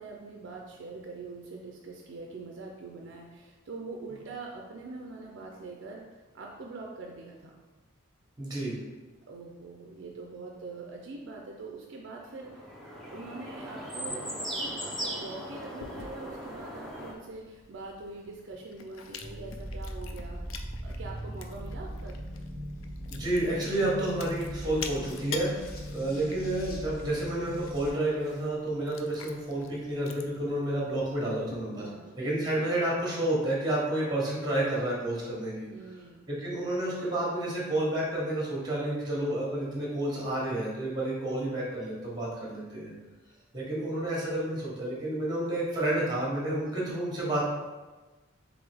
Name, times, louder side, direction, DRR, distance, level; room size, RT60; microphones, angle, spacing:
voice 1, 0.0-7.6 9.3-12.8 13.1-22.1 31.8-32.2 35.7-36.2, right 3 dB, 60° right, 0 dB, 0.4 m, -43 dB
voice 2, 8.4-8.8 23.1-25.5 25.9-31.9 32.2-35.7 36.3-42.9 43.5-47.4, right 1 dB, 20° right, -4 dB, 1.1 m, -30 dB
sound 1, 12.3-17.1, equal, ahead, 0.5 m, -38 dB
Chewing mastication, 15.8-31.5, left 5 dB, 75° left, 0.4 m, -47 dB
sound 2, 19.2-27.9, equal, 45° left, 0.7 m, -39 dB
3.6 x 3.5 x 3.4 m, 1.2 s
head